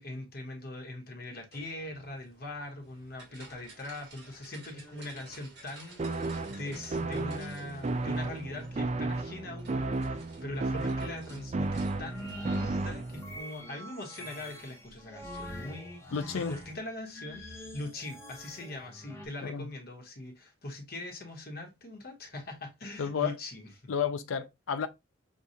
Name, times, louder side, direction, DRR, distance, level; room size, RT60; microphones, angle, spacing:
voice 1, 0.0-23.7, left 2 dB, 50° left, 1.1 m, -42 dB
sound 1, 1.5-12.6, right 3 dB, 55° right, 1.8 m, -54 dB
sound 2, 6.0-13.4, right 2 dB, 35° right, 0.4 m, -33 dB
sound 3, 12.0-19.3, left 1 dB, 15° left, 1.0 m, -46 dB
voice 2, 16.1-16.5 19.4-19.7 23.0-23.3 23.9-24.9, left 7 dB, 85° left, 0.4 m, -31 dB
6.3 x 2.3 x 2.7 m
head